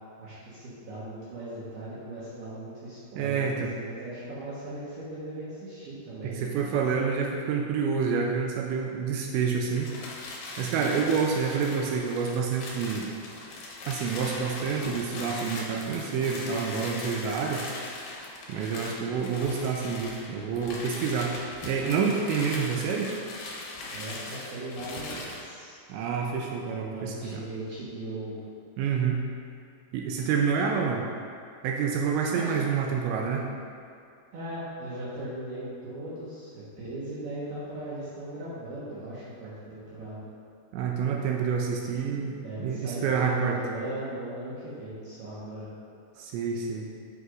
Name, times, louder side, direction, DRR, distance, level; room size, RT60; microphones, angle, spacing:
voice 1, 0.2-6.8 10.7-11.0 23.9-25.8 26.9-28.3 32.3-32.6 34.3-40.3 42.4-45.7, right 1 dB, 65° right, -10 dB, 2.8 m, -38 dB
voice 2, 3.2-3.7 6.2-9.9 10.6-13.1 13.9-17.7 18.5-23.1 25.9-27.4 28.8-29.2 29.9-31.0 31.6-33.5 40.7-43.6 46.2-46.9, right 6 dB, 85° right, 0 dB, 2.7 m, -28 dB
sound 1, 9.7-25.5, left 2 dB, 70° left, 2.2 m, -40 dB
9.6 x 7.9 x 2.5 m, 2.4 s
omnidirectional pair, 5.5 m